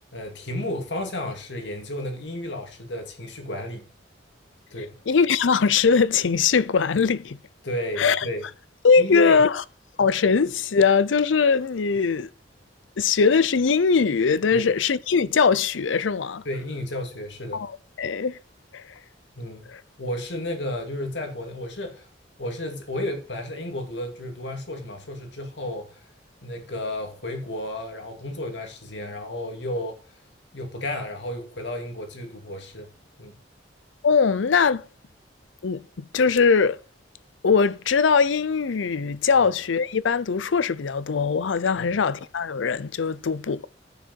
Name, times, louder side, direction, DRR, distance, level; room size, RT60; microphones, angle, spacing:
voice 1, 0.1-3.9 4.7-5.0 7.6-8.4 9.0-9.4 14.5-14.7 16.4-17.6 19.4-19.7 20.0-22.1 22.4-26.0 26.4-30.0 30.5-32.9 33.2-33.4 41.8-41.9, left 1 dB, 65° left, 2.5 m, -32 dB
voice 2, 5.1-7.4 8.0-8.2 8.8-9.6 10.0-12.3 13.0-16.4 17.5-17.7 18.0-18.4 18.7-18.8 34.0-34.8 35.6-36.8 37.4-43.7, left 5 dB, 85° left, 0.6 m, -21 dB
10.0 x 6.6 x 4.6 m
head